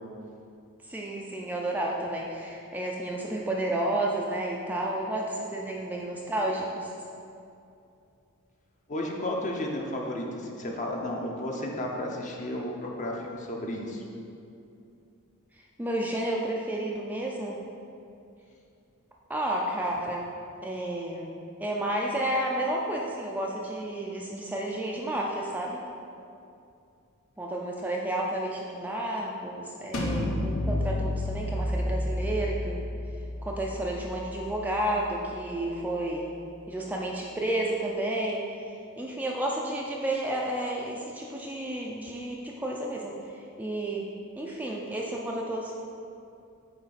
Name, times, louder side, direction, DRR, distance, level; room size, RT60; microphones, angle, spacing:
voice 1, 0.8-6.9 15.8-17.6 19.3-20.3 20.6-21.3 21.6-25.8 27.4-32.9 33.4-36.3 36.7-44.1 44.4-45.7, right 1 dB, 10° right, -2 dB, 0.4 m, -31 dB
voice 2, 8.9-14.0, left 1 dB, 35° left, 0 dB, 0.7 m, -33 dB
sound 1, 29.9-35.6, left 1 dB, 65° left, 0.8 m, -31 dB
8.7 x 3.3 x 4.1 m, 2.6 s
head